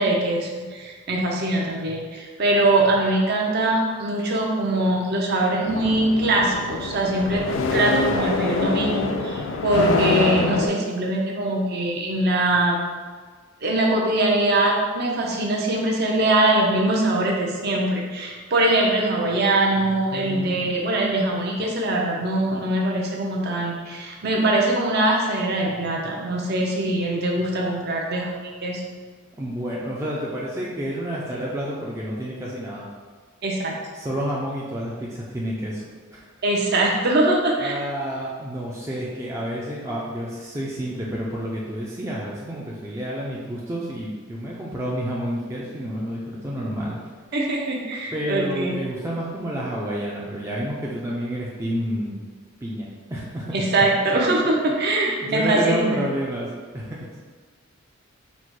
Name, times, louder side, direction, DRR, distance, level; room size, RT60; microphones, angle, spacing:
voice 1, 0.0-7.4 7.7-12.8 13.6-28.8 33.4-33.8 36.4-37.7 47.3-48.8 53.5-56.0, right 2 dB, 50° right, -1 dB, 0.7 m, -22 dB
sound 1, 5.7-10.7, left 3 dB, 65° left, 0.4 m, -25 dB
voice 2, 20.1-20.6 29.4-32.9 33.9-36.2 37.6-47.2 48.1-52.2 52.6-53.6 54.9-57.2, equal, 15° right, -5 dB, 0.4 m, -30 dB
4.1 x 2.1 x 4.6 m, 1.5 s
head